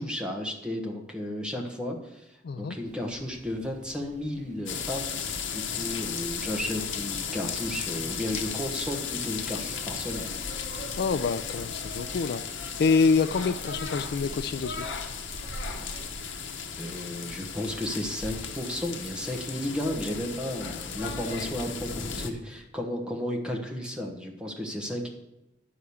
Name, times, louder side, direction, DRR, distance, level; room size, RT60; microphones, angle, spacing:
voice 1, 0.0-5.1 5.5-10.3 14.2-14.3 15.8-16.0 16.8-25.1, left 1 dB, 5° right, 1 dB, 1.3 m, -33 dB
voice 2, 2.4-2.8 11.0-14.9, left 4 dB, 55° left, 11 dB, 0.3 m, -26 dB
sound 1, 2.9-21.0, right 1 dB, 40° right, 0.6 m, -47 dB
sound 2, 4.7-22.3, left 6 dB, 80° left, 1.0 m, -35 dB
10.0 x 4.9 x 7.0 m, 0.94 s
head